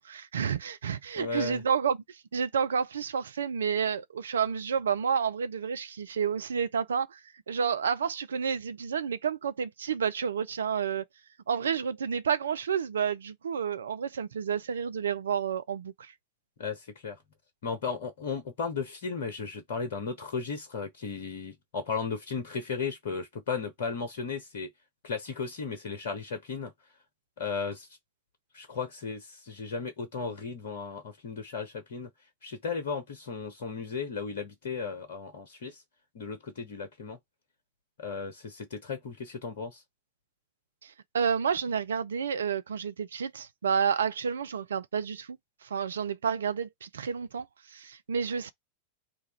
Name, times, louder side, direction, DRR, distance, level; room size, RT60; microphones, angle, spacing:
voice 1, 0.0-2.0 2.3-7.2 7.5-11.0 11.5-16.1 40.8-45.4 45.6-47.5 47.7-48.5, right 7 dB, 65° right, 0.3 m, -30 dB
voice 2, 1.1-1.6 16.6-17.2 17.6-24.7 25.0-26.7 27.4-27.9 28.5-32.1 32.4-35.8 36.1-37.2 38.0-39.8, left 5 dB, 55° left, 0.9 m, -35 dB
2.9 x 2.4 x 4.2 m
figure-of-eight pair, 90°, 0 cm